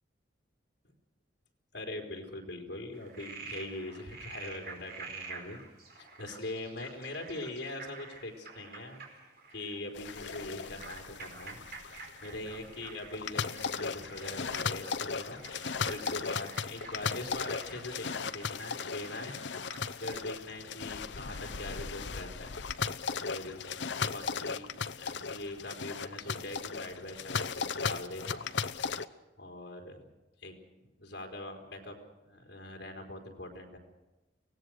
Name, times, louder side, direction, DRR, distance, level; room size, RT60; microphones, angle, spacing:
voice 1, 1.7-5.6 5.9-9.1 9.5-11.6 12.2-19.4 20.0-22.6 23.3-23.6 24.0-28.5 29.4-30.0 30.4-32.0 32.2-33.8, left 2 dB, 70° left, 2 dB, 4.2 m, -42 dB
Frog, 2.9-20.4, right 4 dB, 60° right, 4.9 m, -49 dB
sound 1, 9.9-29.1, left 5 dB, 90° left, 0.8 m, -37 dB
25.0 x 18.5 x 6.4 m, 1.1 s
head